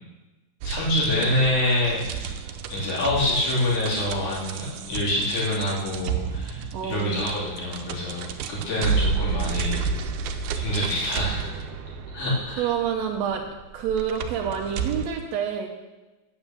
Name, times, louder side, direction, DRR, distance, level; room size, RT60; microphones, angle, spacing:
voice 1, 0.6-2.4 2.7-9.8 10.6-11.5 12.1-12.7, left 1 dB, 80° left, -7 dB, 4.6 m, -26 dB
sound 1, 0.6-15.1, right 6 dB, 90° right, 2.2 m, -31 dB
voice 2, 6.7-7.3 12.6-13.4 13.7-15.7, right 8 dB, 70° right, 1 dB, 1.9 m, -27 dB
9.4 x 7.9 x 7.3 m, 1.1 s
omnidirectional pair, 3.4 m